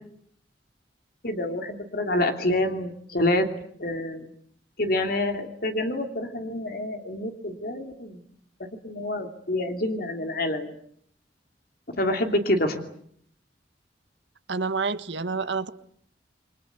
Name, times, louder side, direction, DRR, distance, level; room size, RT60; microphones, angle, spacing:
voice 1, 1.2-3.5 3.8-4.3 4.8-8.2 8.6-10.7 11.9-12.8, left 1 dB, 60° left, 2.8 m, -27 dB
voice 2, 14.5-15.7, right 4 dB, 90° right, 1.5 m, -28 dB
28.5 x 23.5 x 8.3 m
head